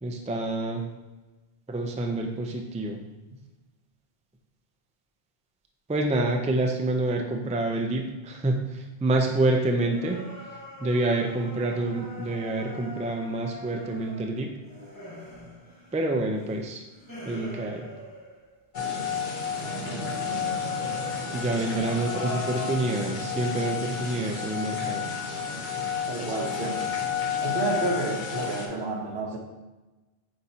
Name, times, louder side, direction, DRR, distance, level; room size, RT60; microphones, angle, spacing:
voice 1, 0.0-0.9 1.7-3.0 5.9-10.2 10.8-14.5 15.9-16.8 17.2-17.8 21.3-25.1, right 2 dB, 10° right, 2 dB, 0.4 m, -27 dB
sound 1, 9.9-18.6 19.1-23.4, equal, 20° left, 1.4 m, -42 dB
sound 2, 18.7-28.7, left 6 dB, 50° left, 0.9 m, -31 dB
voice 2, 26.1-27.0 27.4-29.4, right 3 dB, 75° right, 2 dB, 1.2 m, -30 dB
7.9 x 4.3 x 2.8 m, 1.1 s
omnidirectional pair, 1.1 m